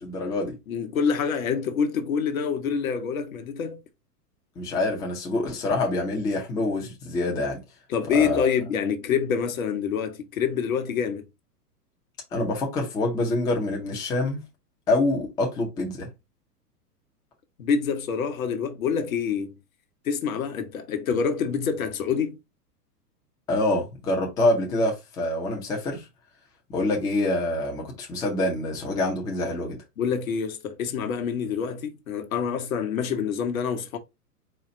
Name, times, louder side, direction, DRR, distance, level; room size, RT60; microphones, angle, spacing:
voice 1, 0.0-0.6 4.6-7.6 8.1-8.4 12.3-14.4 14.9-16.1 23.5-26.1 26.7-29.8, left 2 dB, 10° left, 0.5 m, -26 dB
voice 2, 0.7-3.8 7.9-11.3 17.6-19.6 20.0-22.4 30.0-34.0, left 6 dB, 60° left, 0.9 m, -26 dB
4.2 x 2.4 x 4.0 m
figure-of-eight pair, 105°, 47 cm